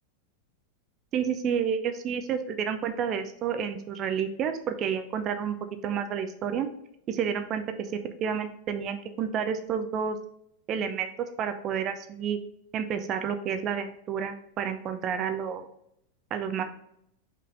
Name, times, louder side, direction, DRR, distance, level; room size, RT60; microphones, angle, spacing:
voice 1, 1.1-5.6 5.8-6.7 7.1-10.2 10.7-11.1 11.4-12.4 12.7-15.6 16.3-16.6, right 7 dB, 35° right, 8 dB, 0.7 m, -30 dB
5.7 x 4.8 x 3.8 m, 0.73 s
figure-of-eight pair, 90°, 0 cm